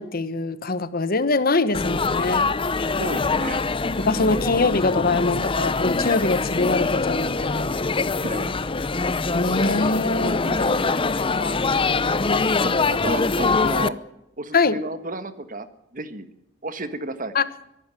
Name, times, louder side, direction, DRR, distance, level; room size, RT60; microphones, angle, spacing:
voice 1, 0.0-2.5 4.0-7.7 9.3-10.7 11.4-11.6 14.5-14.8 17.3-17.4, left 3 dB, 50° left, 14 dB, 1.2 m, -23 dB
Laughter / Chatter / Crowd, 1.7-13.9, left 3 dB, 30° left, 0.7 m, -23 dB
voice 2, 3.0-3.6 4.0-4.4 8.2-8.5 10.2-11.0 12.0-12.2 12.6-14.0 14.4-15.7 15.9-16.3 16.6-17.3, right 2 dB, 45° right, 11 dB, 1.7 m, -32 dB
23.0 x 12.5 x 9.1 m, 0.85 s
head